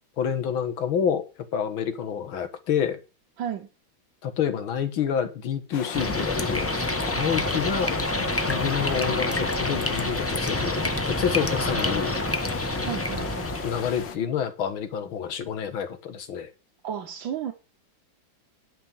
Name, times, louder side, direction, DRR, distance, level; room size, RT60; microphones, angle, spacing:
voice 1, 0.2-1.2 1.5-3.0 4.2-12.3 13.6-16.5, left 8 dB, 85° left, 2.2 m, -28 dB
voice 2, 3.4-3.7 12.8-13.5 16.8-17.5, right 9 dB, 70° right, 1.9 m, -33 dB
sound 1, 5.7-14.2, left 8 dB, 70° left, 1.7 m, -37 dB
sound 2, 5.9-14.1, left 1 dB, 15° left, 0.4 m, -27 dB
10.5 x 6.1 x 7.2 m
omnidirectional pair, 2.1 m